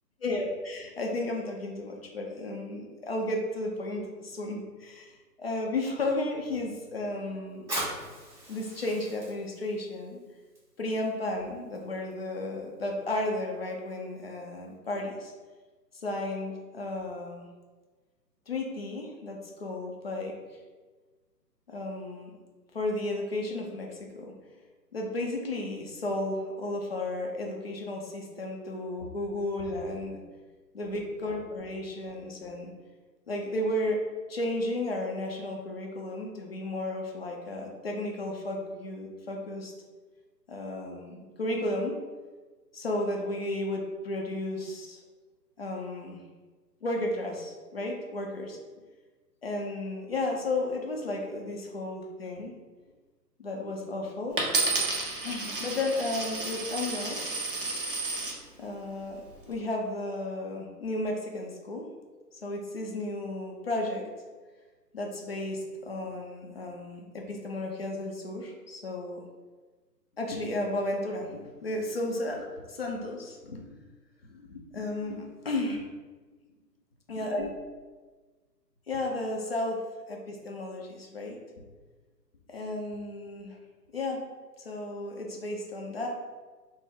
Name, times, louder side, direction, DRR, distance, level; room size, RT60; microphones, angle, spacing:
voice 1, 0.2-7.8 8.5-10.2 10.8-15.3 15.9-17.5 18.5-20.6 21.7-22.3 22.7-24.4 24.9-30.2 30.7-32.7 33.3-34.0 34.3-39.7 40.5-42.0 42.7-45.0 45.6-46.2 46.8-48.6 49.4-52.5 53.4-54.4 55.2-57.2 58.6-61.9 62.3-64.1 64.9-69.2 70.2-73.8 74.2-75.8 77.1-77.5 78.9-79.8 80.1-81.4 82.5-83.6 83.9-84.2 84.6-86.1, left 2 dB, 40° left, 0 dB, 0.4 m, -33 dB
Fire, 7.5-14.8, right 1 dB, 10° right, 1.5 m, -42 dB
Coin (dropping), 54.4-58.4 59.1-59.5, right 3 dB, 35° right, 0.5 m, -31 dB
3.6 x 2.0 x 3.6 m, 1.3 s
figure-of-eight pair, 140°, 50 cm